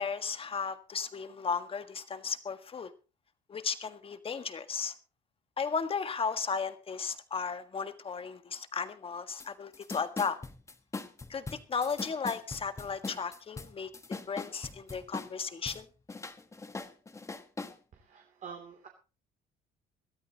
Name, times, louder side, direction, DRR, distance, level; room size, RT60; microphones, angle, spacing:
voice 1, 0.0-2.9 3.5-4.9 5.6-10.4 11.3-13.9 14.3-15.8, left 5 dB, 35° left, 1.6 m, -35 dB
sound 1, 9.4-9.5 9.7-15.8 16.1-17.8, left 3 dB, 15° left, 1.4 m, -41 dB
voice 2, 17.9-18.9, right 6 dB, 50° right, 3.0 m, -47 dB
22.0 x 13.5 x 3.0 m
cardioid pair, 110°, 17 cm